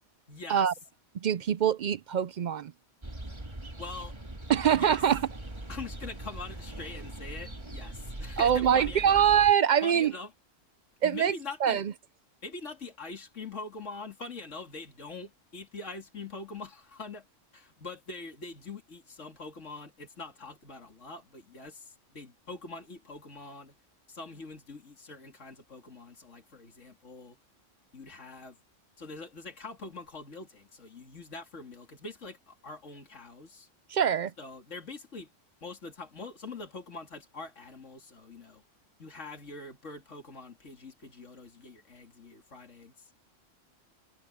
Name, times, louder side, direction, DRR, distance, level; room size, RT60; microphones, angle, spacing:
voice 1, 0.3-0.7 3.8-4.1 4.7-5.0 5.7-9.2 9.8-10.3 11.0-11.8 12.4-17.2 17.5-23.8 24.1-27.4 27.9-28.6 29.0-33.7 34.4-35.3 35.6-38.6 39.0-43.1, left 3 dB, 75° left, 3.0 m, -43 dB
voice 2, 1.2-2.7 4.5-5.2 8.4-10.1 11.0-11.3 11.6-11.8 33.9-34.3, right 9 dB, 70° right, 0.4 m, -24 dB
sound 1, 3.0-9.5, right 1 dB, 20° right, 1.8 m, -41 dB
omnidirectional pair, 1.3 m